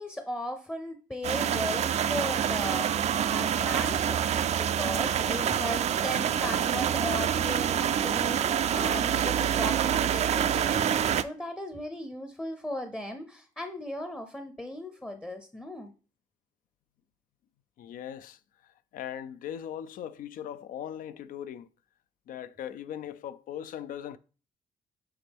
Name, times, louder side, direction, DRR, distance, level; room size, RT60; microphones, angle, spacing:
voice 1, 0.0-15.9, left 1 dB, 10° left, 0.6 m, -37 dB
sound 1, 1.2-11.2, right 9 dB, 50° right, 0.4 m, -26 dB
voice 2, 17.8-21.7 22.3-24.2, left 10 dB, 75° left, 0.4 m, -39 dB
7.0 x 4.2 x 3.5 m
cardioid pair, 105°, 14 cm